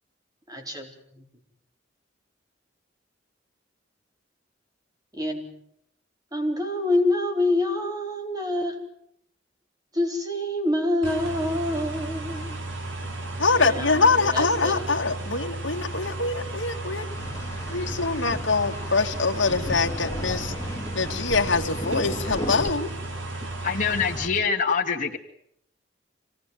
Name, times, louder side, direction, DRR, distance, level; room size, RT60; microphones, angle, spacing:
voice 1, 0.5-1.2 5.1-5.5 6.3-8.8 9.9-12.6 13.6-14.8, left 1 dB, 20° right, 3 dB, 4.3 m, -27 dB
sound 1, 11.0-24.3, right 2 dB, 85° right, 3.5 m, -34 dB
voice 2, 13.4-17.1 17.7-20.5 20.9-22.9, left 4 dB, 70° left, 2 dB, 2.3 m, -24 dB
sound 2, 17.2-22.7, left 1 dB, 15° left, 2.4 m, -35 dB
voice 3, 23.6-25.2, left 5 dB, 45° left, -2 dB, 2.5 m, -24 dB
26.0 x 18.5 x 9.3 m, 0.73 s
head